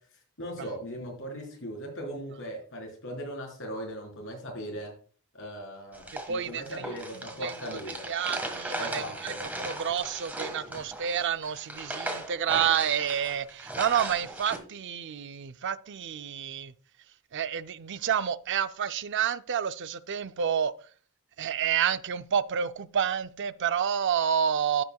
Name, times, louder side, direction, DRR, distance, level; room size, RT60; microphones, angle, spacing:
voice 1, 0.4-4.9 5.3-8.1 8.8-9.4 10.7-10.8, equal, 65° left, 4.1 m, -39 dB
sound 1, 5.9-14.6, right 1 dB, 10° right, 1.6 m, -38 dB
voice 2, 6.3-16.7 17.3-20.7 21.4-24.8, right 8 dB, 60° right, 0.5 m, -29 dB
16.0 x 5.7 x 2.3 m
head